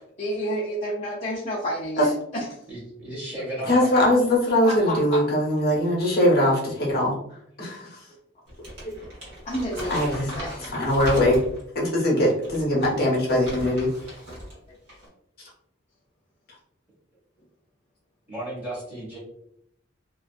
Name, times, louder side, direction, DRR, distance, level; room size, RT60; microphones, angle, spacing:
voice 1, 0.2-2.6 4.6-5.2 9.5-10.7 14.7-14.8, equal, 35° left, -5 dB, 0.4 m, -30 dB
voice 2, 2.7-4.0 18.3-19.2, right 1 dB, 10° right, -6 dB, 1.0 m, -34 dB
voice 3, 3.7-7.1 7.6-8.0 8.8-8.9 9.9-10.3 10.6-11.4 11.7-14.2, left 1 dB, 50° left, -3 dB, 0.8 m, -21 dB
Crumpling crinkling, 8.5-11.7 12.3-14.6 14.8-15.1, equal, 60° right, 1.1 m, -37 dB
2.5 x 2.3 x 2.3 m, 0.73 s
head